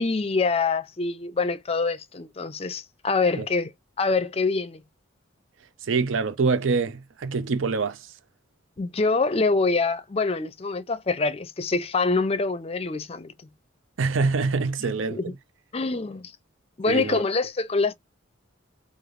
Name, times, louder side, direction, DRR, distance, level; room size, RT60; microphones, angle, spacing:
voice 1, 0.0-3.7 4.0-4.8 8.8-13.3 15.1-15.3 15.7-16.3 16.8-17.9, left 3 dB, 30° left, 0.5 m, -25 dB
voice 2, 5.8-8.1 14.0-15.3 16.9-17.2, right 4 dB, 80° right, 0.6 m, -25 dB
3.3 x 2.6 x 2.5 m
head